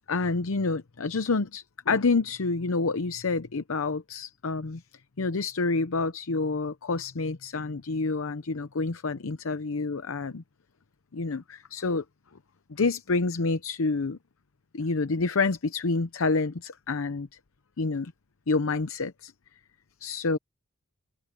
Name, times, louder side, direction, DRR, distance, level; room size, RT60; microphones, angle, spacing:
voice 1, 0.1-4.8 5.2-10.4 11.1-12.0 12.7-14.2 14.7-17.3 17.8-18.1 18.5-19.3 20.0-20.4, left 3 dB, 75° left, 0.7 m, -28 dB
open air
head